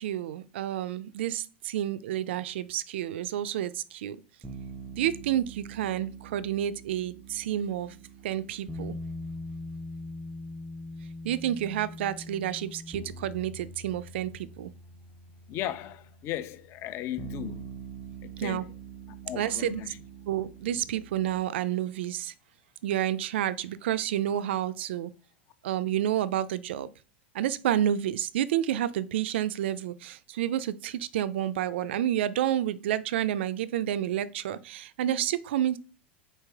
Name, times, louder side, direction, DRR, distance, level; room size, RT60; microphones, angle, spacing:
voice 1, 0.0-4.2 5.0-8.0 8.2-9.0 11.2-14.7 18.4-18.7 19.3-19.8 20.3-22.3 22.8-25.1 25.6-26.9 27.3-35.8, right 11 dB, 75° right, 0.3 m, -29 dB
sound 1, 4.4-21.4, right 1 dB, 5° right, 0.6 m, -43 dB
voice 2, 15.5-17.7 18.2-18.6 19.3-19.9, left 12 dB, 45° left, 0.6 m, -36 dB
4.3 x 3.2 x 3.4 m
hypercardioid pair, 105°, 6 cm